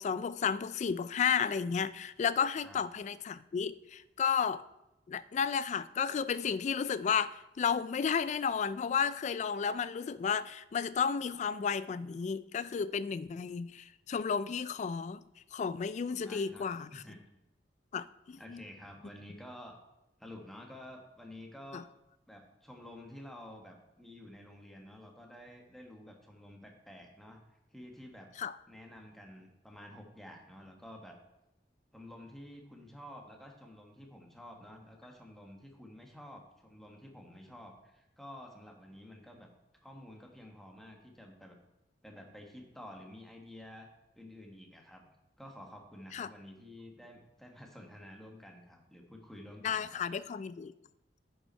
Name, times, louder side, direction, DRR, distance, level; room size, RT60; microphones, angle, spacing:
voice 1, 0.0-4.6 5.1-15.2 15.5-16.9 17.9-18.6 21.7-21.8 28.4-28.6 46.1-46.3 49.6-50.7, left 6 dB, 40° left, 16 dB, 0.3 m, -32 dB
voice 2, 16.2-16.7 16.9-17.2 18.4-19.8 20.2-21.8 22.3-27.4 27.7-28.3 28.7-31.2 31.9-39.5 39.8-41.6 42.0-43.9 44.2-50.0, left 1 dB, ahead, 1 dB, 1.3 m, -50 dB
10.5 x 5.4 x 4.4 m, 0.92 s
head